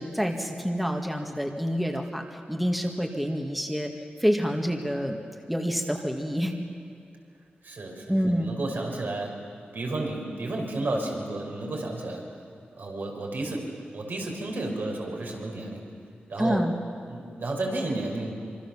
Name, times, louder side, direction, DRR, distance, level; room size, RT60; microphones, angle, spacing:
voice 1, 0.0-3.9 4.2-5.2 5.5-6.6 8.1-8.5 16.4-16.7, equal, ahead, 3 dB, 1.9 m, -27 dB
voice 2, 7.6-9.4 9.7-12.2 12.8-13.7 13.9-15.8 16.3-16.6 17.1-18.4, right 2 dB, 70° right, 0 dB, 5.4 m, -32 dB
26.0 x 25.0 x 7.3 m, 2.4 s
wide cardioid pair, 90°, 4 cm